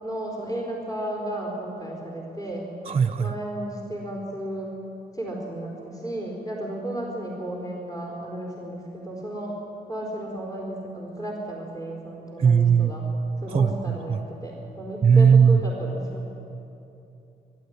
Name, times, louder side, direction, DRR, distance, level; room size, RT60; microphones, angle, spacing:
voice 1, 0.0-2.6 3.2-4.7 5.1-9.6 9.9-13.0 13.4-16.3, right 1 dB, 20° left, -1 dB, 4.6 m, -33 dB
voice 2, 2.9-3.3 12.4-12.9 13.5-13.7 14.1-14.2 15.0-15.6, right 6 dB, 35° right, 12 dB, 0.9 m, -17 dB
23.0 x 12.0 x 10.0 m, 2.8 s
cardioid pair, 80°, 16 cm